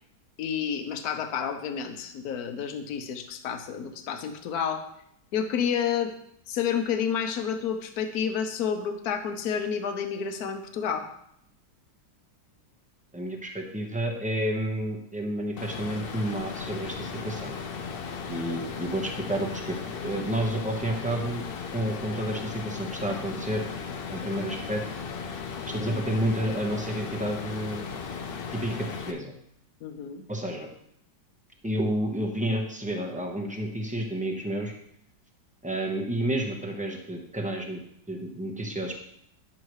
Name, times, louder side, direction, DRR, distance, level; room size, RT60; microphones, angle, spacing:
voice 1, 0.4-4.8 5.3-6.1 6.5-11.1 29.8-30.2, left 7 dB, 65° left, 7 dB, 1.2 m, -30 dB
voice 2, 13.1-17.5 18.3-19.8 20.0-21.4 21.7-23.6 24.1-24.8 25.7-27.9 28.6-28.8 29.1-29.3 30.3-30.7 31.6-34.7 35.6-37.8 38.1-38.9, right 1 dB, 5° right, 0 dB, 0.6 m, -30 dB
sound 1, 15.6-29.1, left 5 dB, 85° left, 0.5 m, -36 dB
9.9 x 7.3 x 3.2 m, 0.72 s
omnidirectional pair, 1.9 m